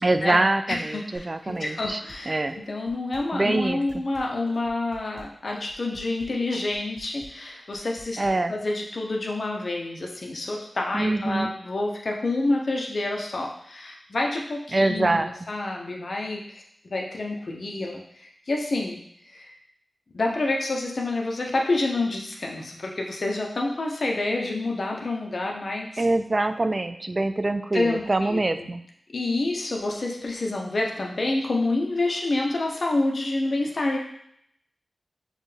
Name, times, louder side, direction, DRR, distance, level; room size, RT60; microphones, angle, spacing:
voice 1, 0.0-2.0 2.3-2.6 3.3-3.8 8.2-8.5 10.9-11.5 14.7-15.3 26.0-28.8, right 2 dB, 40° right, 9 dB, 0.3 m, -24 dB
voice 2, 0.7-8.2 8.5-19.0 19.3-19.6 20.1-26.1 27.7-28.7 29.1-34.0, left 2 dB, 65° left, 0 dB, 0.7 m, -28 dB
Dishes pots and pans, 1.1-2.2 2.5-8.3, right 1 dB, 80° right, 1.2 m, -48 dB
6.4 x 2.3 x 3.2 m, 0.71 s
wide cardioid pair, 60°, 0 cm